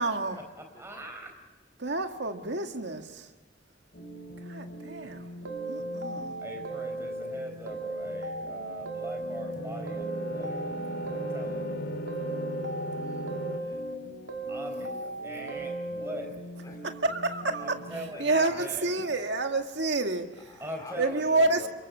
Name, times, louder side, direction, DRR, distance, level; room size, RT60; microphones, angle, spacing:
voice 1, 0.0-0.4 1.8-3.3 4.4-5.3 5.7-6.4 17.0-17.8 18.2-20.5 21.0-21.7, right 2 dB, 70° right, 1.9 m, -29 dB
voice 2, 0.6-1.4 6.4-10.6 11.1-11.9 14.5-16.4 17.6-18.9 20.6-21.7, right 1 dB, 15° right, 4.4 m, -42 dB
sound 1, 3.9-18.1, right 1 dB, 50° left, 2.7 m, -44 dB
sound 2, 5.4-7.3 7.7-9.5 9.9-11.7 12.1-14.0 14.3-16.2, right 2 dB, 90° right, 2.4 m, -36 dB
sound 3, 9.2-13.6, equal, 75° left, 2.4 m, -37 dB
voice 3, 12.9-13.8 16.6-17.0 18.1-19.0 20.4-21.7, left 1 dB, 20° left, 3.0 m, -50 dB
28.5 x 24.0 x 6.4 m
head